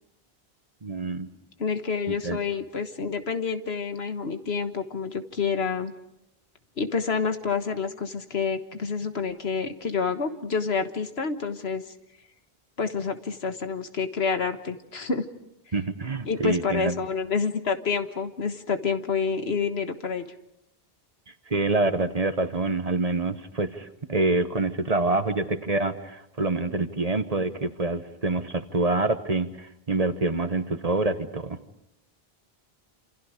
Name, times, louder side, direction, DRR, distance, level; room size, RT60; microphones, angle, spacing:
voice 1, 0.8-1.3 2.1-2.4 15.7-17.0 21.5-31.6, right 2 dB, 40° right, 10 dB, 1.2 m, -26 dB
voice 2, 1.6-5.9 6.8-11.9 12.8-15.3 16.2-20.2, left 5 dB, 80° left, 8 dB, 1.7 m, -28 dB
28.0 x 27.5 x 5.0 m, 0.83 s
omnidirectional pair, 1.0 m